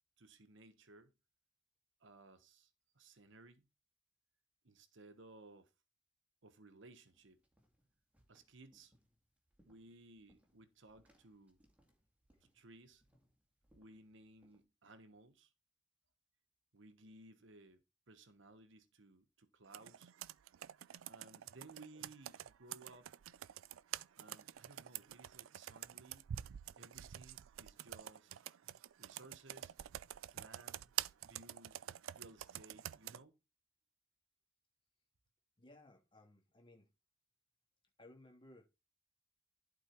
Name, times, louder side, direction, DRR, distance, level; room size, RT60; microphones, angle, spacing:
voice 1, 0.2-1.1 2.0-3.7 4.6-5.7 6.4-7.4 8.3-9.0 9.6-11.6 12.5-13.0 13.7-15.5 16.7-20.1 21.1-23.1 24.2-26.3 26.8-28.4 29.0-29.7 30.3-30.9 31.2-31.8 32.1-33.4, right 2 dB, 60° right, 1.2 m, -59 dB
sound 1, 7.1-14.6, equal, 5° right, 2.2 m, -74 dB
Computer keyboard, 19.7-33.2, right 11 dB, 80° right, 0.4 m, -47 dB
voice 2, 35.6-36.9 38.0-38.7, left 1 dB, 25° left, 2.9 m, -60 dB
11.5 x 4.7 x 4.5 m
head